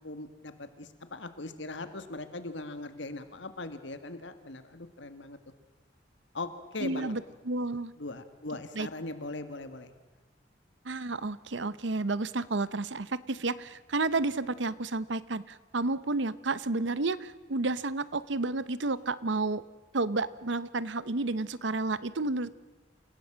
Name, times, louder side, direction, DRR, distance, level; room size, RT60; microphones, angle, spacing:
voice 1, 0.0-5.4 6.3-7.1 8.0-9.9, left 2 dB, 85° left, 10 dB, 1.9 m, -40 dB
voice 2, 6.8-7.9 8.7-8.9 10.8-19.6 19.9-22.5, right 3 dB, 85° right, 17 dB, 0.9 m, -31 dB
28.5 x 16.5 x 7.5 m, 1.2 s
head